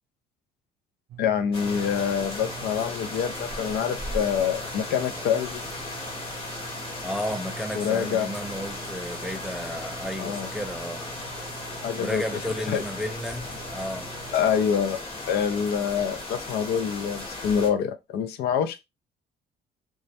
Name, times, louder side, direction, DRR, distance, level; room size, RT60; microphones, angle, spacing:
sound 1, 1.1-14.3, right 10 dB, 60° right, 0.6 m, -46 dB
voice 1, 1.2-5.6 7.8-8.3 10.2-10.5 11.8-12.2 12.7-12.8 14.3-15.0 15.3-18.8, left 8 dB, 70° left, 0.4 m, -26 dB
sound 2, 1.5-17.7, left 2 dB, 35° left, 0.9 m, -36 dB
voice 2, 7.0-11.1 12.0-14.1, equal, 5° right, 0.3 m, -33 dB
2.3 x 2.0 x 2.7 m
cardioid pair, 110°, 17 cm